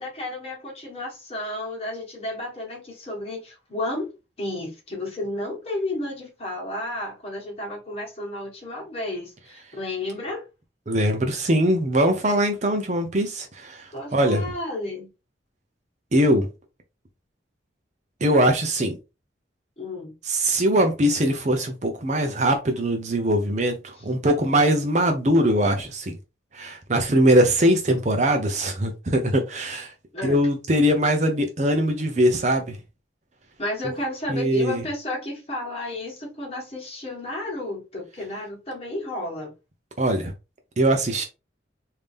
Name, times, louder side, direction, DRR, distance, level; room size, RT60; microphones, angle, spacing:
voice 1, 0.0-10.4 13.9-15.1 19.8-20.1 24.0-24.1 30.1-30.4 33.6-39.5, left 1 dB, 30° left, 1.5 m, -32 dB
voice 2, 10.9-14.4 16.1-16.5 18.2-18.9 20.3-26.2 26.5-29.9 30.2-32.8 34.3-34.8 40.0-40.3 40.8-41.2, right 1 dB, 40° right, 0.6 m, -21 dB
3.5 x 2.8 x 3.3 m
head